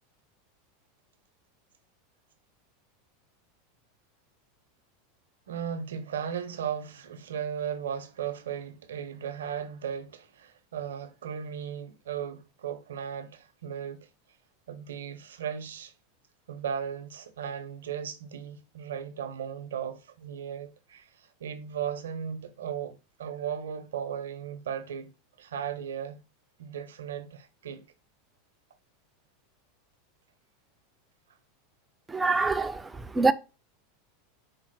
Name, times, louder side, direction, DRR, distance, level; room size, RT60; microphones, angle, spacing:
voice 1, 5.5-14.1 14.7-15.9 16.5-25.1 25.4-26.2 26.6-27.8, right 8 dB, 85° right, 0.6 m, -36 dB
voice 2, 32.1-33.3, right 3 dB, 15° right, 0.4 m, -25 dB
4.6 x 2.0 x 4.6 m
hypercardioid pair, 95°, 0 cm